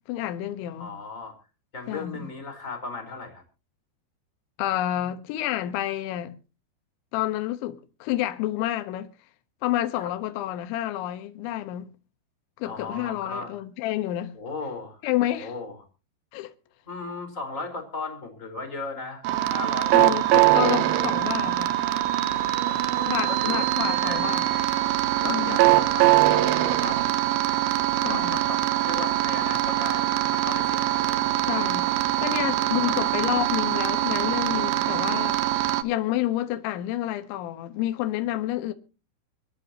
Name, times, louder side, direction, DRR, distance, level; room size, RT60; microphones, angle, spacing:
voice 1, 0.1-0.9 1.9-2.3 4.6-6.4 7.1-9.1 9.6-11.9 12.6-14.3 15.0-15.5 16.3-16.5 19.9-21.7 23.1-24.5 25.3-25.6 28.0-28.4 31.5-31.9 32.2-35.4 35.8-38.7, left 13 dB, 80° left, 3.5 m, -29 dB
voice 2, 0.8-1.3 1.7-3.4 10.0-10.1 12.7-13.5 14.3-15.0 15.3-15.8 16.8-20.2 22.6-24.4 25.2-27.2 28.1-31.5 32.3-33.1, left 3 dB, 15° left, 4.1 m, -37 dB
sound 1, 19.2-35.8, right 14 dB, 85° right, 2.0 m, -23 dB
26.0 x 10.0 x 2.8 m
omnidirectional pair, 5.4 m